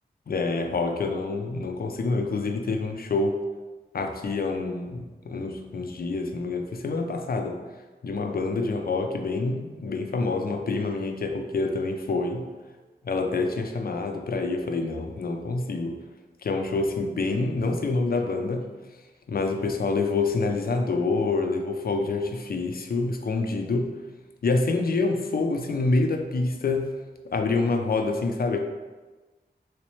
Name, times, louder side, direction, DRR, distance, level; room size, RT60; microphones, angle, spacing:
voice 1, 0.3-3.4 3.9-7.6 8.0-12.4 13.0-16.0 16.4-18.6 19.3-23.9 24.4-26.9 27.2-28.6, left 3 dB, 55° left, 4 dB, 0.4 m, -27 dB
3.2 x 3.0 x 3.1 m, 1.2 s
wide cardioid pair, 55°, 18 cm